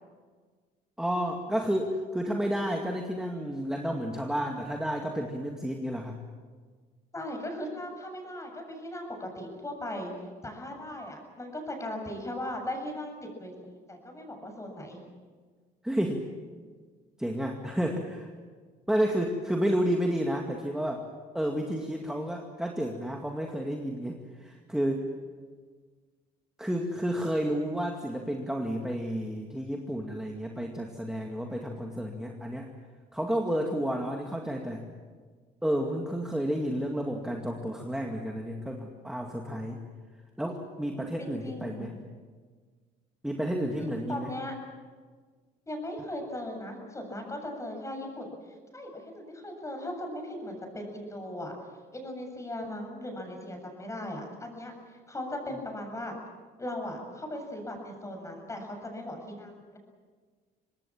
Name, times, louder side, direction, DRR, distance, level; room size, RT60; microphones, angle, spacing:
voice 1, 1.0-6.2 15.8-16.2 17.2-18.3 18.9-21.0 21.3-25.1 26.6-32.7 33.1-34.8 35.6-39.8 40.4-41.9 43.2-44.3, equal, 5° right, 1 dB, 2.2 m, -31 dB
voice 2, 7.1-10.1 10.4-13.5 13.9-15.0 41.2-41.9 43.8-44.6 45.7-48.4 48.7-51.5 51.9-56.2 56.6-59.8, left 1 dB, 15° left, 3 dB, 7.5 m, -38 dB
25.5 x 19.5 x 7.4 m, 1.5 s
cardioid pair, 110°, 17 cm